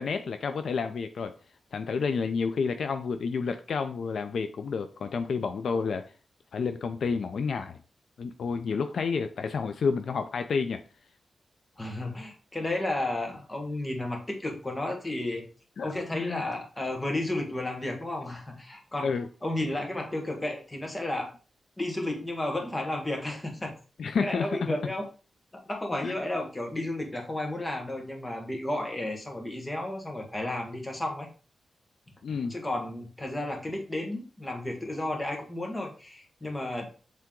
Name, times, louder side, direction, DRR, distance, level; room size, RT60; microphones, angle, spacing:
voice 1, 0.0-1.3 1.7-6.0 6.5-7.8 8.2-10.8 15.8-16.4 19.0-19.3 24.0-24.8 26.0-26.1 32.2-32.5, left 5 dB, 75° left, 9 dB, 0.5 m, -30 dB
voice 2, 11.8-15.5 15.8-19.1 19.4-21.3 21.8-23.7 24.2-25.1 25.5-31.3 32.5-36.9, left 1 dB, 20° left, 2 dB, 1.6 m, -32 dB
7.4 x 3.5 x 3.7 m, 0.36 s
wide cardioid pair, 115°, 0 cm